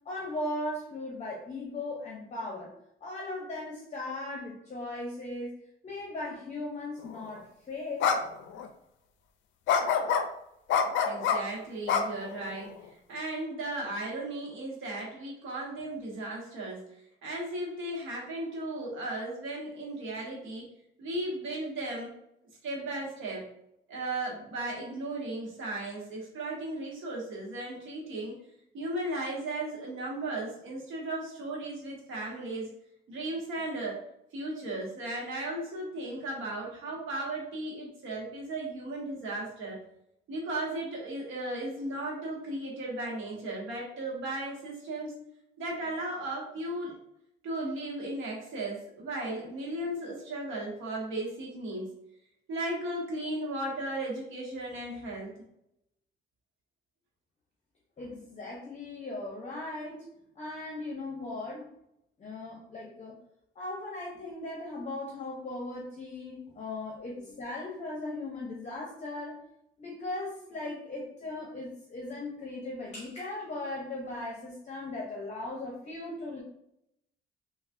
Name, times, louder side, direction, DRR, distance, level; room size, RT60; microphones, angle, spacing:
voice 1, 0.1-2.7 3.0-5.5 5.8-8.2 58.0-60.1 60.4-61.7 62.2-63.1 63.6-69.4 69.8-76.4, left 2 dB, 35° left, -2 dB, 0.7 m, -38 dB
sound 1, 7.2-7.4 8.0-8.2 8.5-8.7 9.7-10.2 10.7-11.4 11.9-12.7, left 6 dB, 75° left, 0.4 m, -26 dB
voice 2, 11.0-16.8 17.2-20.7 21.0-22.1 22.6-23.4 23.9-28.4 28.7-32.7 33.1-34.0 34.3-39.8 40.3-45.1 45.6-47.0 47.4-51.9 52.5-55.3, right 2 dB, 85° right, -3 dB, 1.1 m, -36 dB
3.2 x 2.3 x 2.5 m, 0.79 s
cardioid pair, 90°, 20 cm